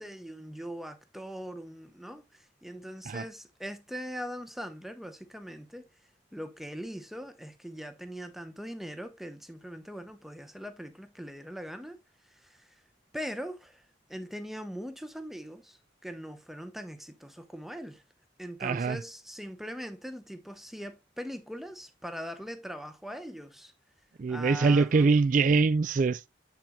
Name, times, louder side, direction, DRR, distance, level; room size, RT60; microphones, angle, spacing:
voice 1, 0.0-5.9 6.3-12.0 12.3-12.7 13.1-13.8 14.1-18.0 18.4-23.7 24.3-25.1, equal, ahead, 0.8 m, -41 dB
voice 2, 18.6-19.0 24.2-26.3, right 4 dB, 45° right, 0.3 m, -24 dB
7.6 x 7.2 x 2.2 m
head